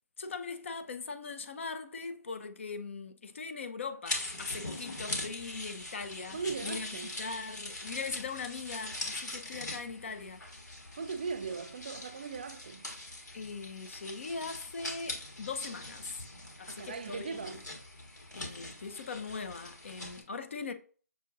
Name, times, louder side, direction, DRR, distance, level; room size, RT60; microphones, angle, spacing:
voice 1, 0.2-10.4 13.3-16.2 16.6-17.6 18.3-20.7, left 4 dB, 45° left, 0.6 m, -40 dB
sound 1, 4.1-20.2, left 2 dB, 85° left, 1.7 m, -42 dB
voice 2, 6.3-7.1 11.0-12.9 16.7-17.6, right 5 dB, 35° right, 0.4 m, -38 dB
6.7 x 2.5 x 2.6 m
figure-of-eight pair, 160°, 9 cm